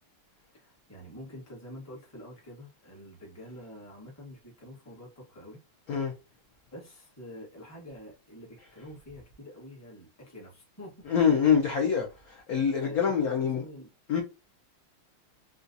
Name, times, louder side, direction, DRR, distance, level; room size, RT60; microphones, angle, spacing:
voice 1, 0.5-5.6 6.7-11.1 12.8-13.9, equal, 10° left, 0.9 m, -47 dB
voice 2, 11.1-13.6 14.1-14.2, left 7 dB, 65° left, 0.9 m, -25 dB
3.8 x 2.4 x 2.6 m
omnidirectional pair, 2.4 m